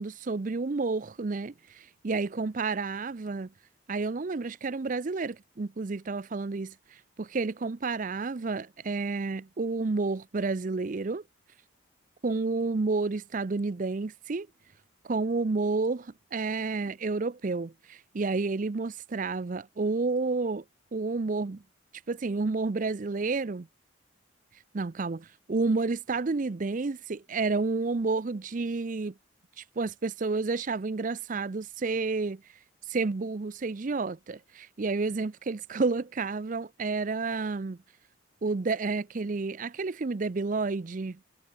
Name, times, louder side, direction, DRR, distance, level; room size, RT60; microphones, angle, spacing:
voice 1, 0.0-3.5 3.9-6.7 7.2-11.2 12.2-14.5 15.0-20.6 20.9-21.6 22.1-23.7 24.7-29.1 29.6-32.4 32.9-37.8 38.4-41.2, right 3 dB, 40° right, 0.5 m, -30 dB
head